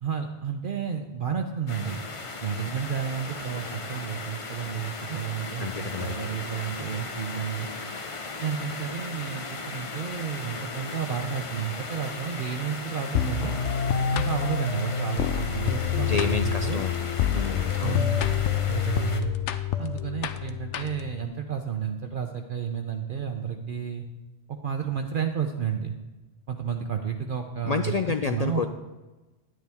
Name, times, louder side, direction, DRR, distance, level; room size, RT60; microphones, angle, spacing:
voice 1, 0.0-2.0 2.4-7.7 8.4-13.6 14.1-16.8 17.8-18.4 18.7-19.3 19.8-24.0 24.5-26.0 26.5-28.6, right 7 dB, 55° right, 4 dB, 0.7 m, -31 dB
sound 1, 1.7-19.2, left 3 dB, 35° left, 0.7 m, -37 dB
voice 2, 5.6-6.2 16.0-16.9 17.3-18.0 27.6-28.7, left 5 dB, 65° left, 7 dB, 0.4 m, -29 dB
sound 2, 13.1-21.2, left 9 dB, 90° left, 0.9 m, -27 dB
11.0 x 9.3 x 3.5 m, 1.1 s
omnidirectional pair, 1.2 m